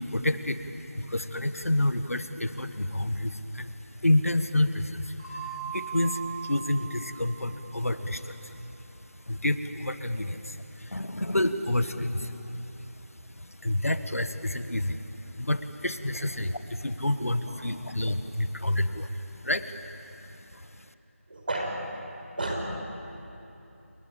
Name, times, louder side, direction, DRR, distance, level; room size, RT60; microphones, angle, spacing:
voice 1, 0.0-12.9 13.3-15.0 15.3-20.8, left 1 dB, 75° left, 10 dB, 1.8 m, -29 dB
sound 1, 5.2-7.7, right 8 dB, 15° right, 6.0 m, -39 dB
voice 2, 21.3-21.9 22.3-22.7, right 1 dB, 40° right, 1 dB, 5.5 m, -33 dB
29.0 x 22.5 x 8.9 m, 2.9 s
figure-of-eight pair, 170°, 8 cm